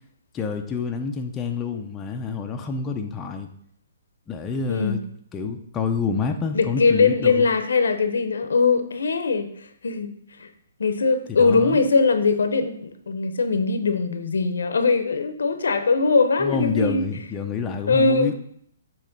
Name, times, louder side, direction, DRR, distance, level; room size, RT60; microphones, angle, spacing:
voice 1, 0.3-3.5 4.3-5.0 5.3-7.4 11.3-11.8 16.4-18.3, left 5 dB, 15° left, 3 dB, 0.5 m, -28 dB
voice 2, 4.7-5.0 6.5-9.5 9.8-10.1 10.4-10.5 10.8-17.1 17.9-18.3, left 4 dB, 85° left, 9 dB, 0.8 m, -21 dB
7.3 x 3.1 x 5.2 m, 0.67 s
hypercardioid pair, 155°, 0 cm